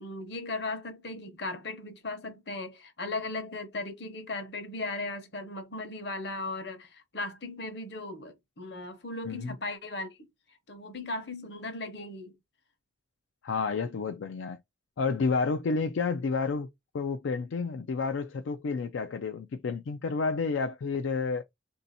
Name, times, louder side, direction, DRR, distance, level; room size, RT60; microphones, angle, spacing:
voice 1, 0.0-10.3 10.7-12.3, left 2 dB, 60° left, 0.9 m, -37 dB
voice 2, 13.4-14.6 15.0-16.7 16.9-21.4, left 4 dB, 85° left, 0.4 m, -30 dB
3.4 x 2.7 x 4.0 m
head